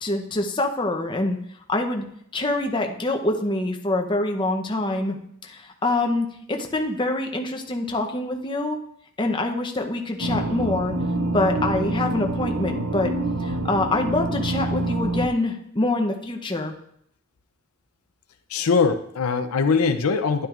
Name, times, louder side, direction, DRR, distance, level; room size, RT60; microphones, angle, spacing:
voice 1, 0.0-1.4 1.7-2.0 2.3-5.2 5.4-8.8 9.2-10.9 11.3-13.1 13.4-16.7, left 2 dB, 20° left, 3 dB, 0.7 m, -25 dB
sound 1, 10.2-15.3, right 1 dB, 70° right, 0.6 m, -26 dB
voice 2, 18.5-20.5, left 5 dB, 75° left, 9 dB, 0.5 m, -21 dB
12.0 x 10.0 x 2.5 m, 0.71 s
head